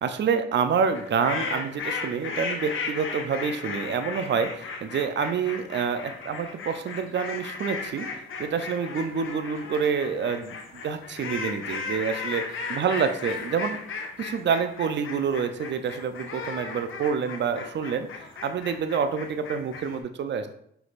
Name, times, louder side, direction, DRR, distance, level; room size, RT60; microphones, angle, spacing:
voice 1, 0.0-13.8 14.2-18.1 18.4-20.5, right 6 dB, 55° right, 9 dB, 0.5 m, -27 dB
sound 1, 0.9-20.0, left 4 dB, 70° left, 0.8 m, -35 dB
5.8 x 3.4 x 2.4 m, 0.70 s
supercardioid pair, 50°, 21 cm